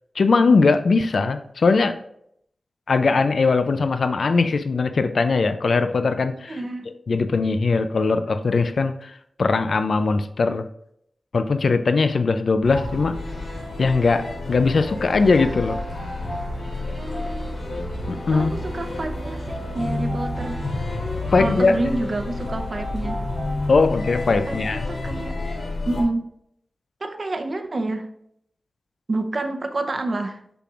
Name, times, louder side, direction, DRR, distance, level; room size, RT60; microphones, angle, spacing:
voice 1, 0.2-2.0 2.9-6.6 7.1-10.6 11.3-13.1 13.8-15.8 18.1-18.5 21.3-21.7 23.7-24.8, left 4 dB, 70° left, 9 dB, 0.4 m, -20 dB
voice 2, 6.5-6.9 16.9-17.5 18.3-20.6 21.4-23.2 24.5-25.3 25.8-26.2 27.0-28.1 29.1-30.4, right 2 dB, 45° right, 6 dB, 0.7 m, -28 dB
sound 1, 12.6-26.0, left 2 dB, 85° left, 2.4 m, -29 dB
6.8 x 6.0 x 2.4 m, 0.70 s
wide cardioid pair, 105°, 0 cm